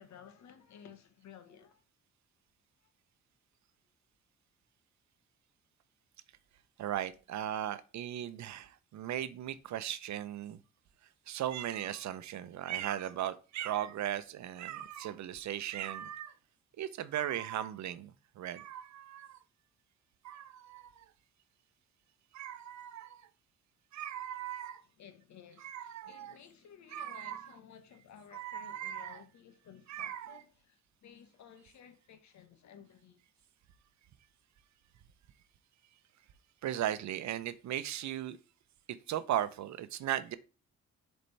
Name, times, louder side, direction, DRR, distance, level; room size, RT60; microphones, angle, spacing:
voice 1, 0.0-1.8 25.0-33.2, left 8 dB, 65° left, 1.2 m, -55 dB
voice 2, 6.8-10.6 11.3-16.3 16.8-19.4 20.2-21.1 22.3-23.3 23.9-24.8 25.6-26.4 26.9-27.5 28.3-29.2 29.9-30.4 36.6-38.4 38.9-40.4, right 11 dB, 65° right, 0.7 m, -37 dB
6.8 x 4.4 x 3.3 m
cardioid pair, 90°, 30 cm